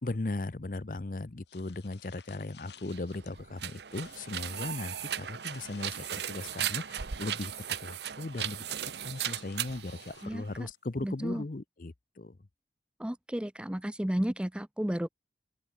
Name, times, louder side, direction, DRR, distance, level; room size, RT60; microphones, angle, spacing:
voice 1, 0.0-7.5 7.8-8.6 9.0-12.4, left 2 dB, 50° left, 0.7 m, -37 dB
sound 1, 1.5-3.3 3.7-4.8 5.4-6.8 7.1-8.2 9.1-10.6, left 7 dB, 80° left, 3.8 m, -56 dB
sound 2, 2.8-10.7, right 10 dB, 75° right, 0.8 m, -37 dB
voice 2, 10.2-10.7 11.0-11.4 13.0-15.1, equal, 5° right, 0.5 m, -33 dB
open air
head